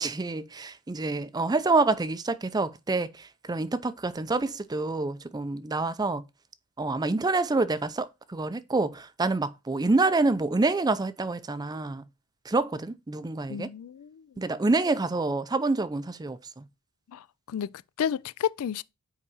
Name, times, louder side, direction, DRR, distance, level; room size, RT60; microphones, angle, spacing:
voice 1, 0.0-6.2 6.8-12.0 12.5-13.7 14.4-16.6, right 3 dB, 20° right, 0.4 m, -27 dB
voice 2, 13.5-14.5 17.1-18.8, left 8 dB, 70° left, 0.3 m, -32 dB
5.5 x 4.7 x 5.4 m
head